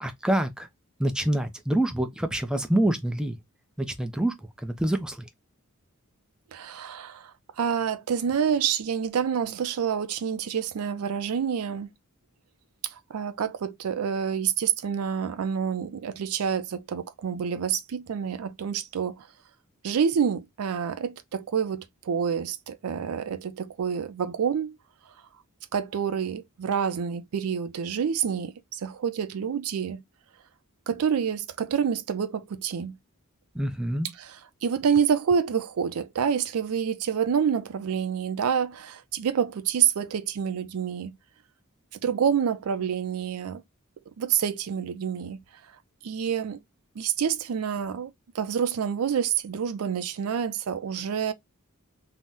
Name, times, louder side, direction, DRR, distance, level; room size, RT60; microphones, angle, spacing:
voice 1, 0.0-0.7 1.0-3.4 3.8-4.3 4.6-5.2 33.5-34.1, right 1 dB, 5° right, 0.4 m, -26 dB
voice 2, 6.5-11.9 12.8-19.3 19.8-24.8 25.7-30.0 30.9-33.0 34.2-41.2 42.0-43.6 44.2-45.4 46.0-46.6 47.0-51.3, right 7 dB, 75° right, 0.4 m, -28 dB
2.8 x 2.0 x 3.5 m
head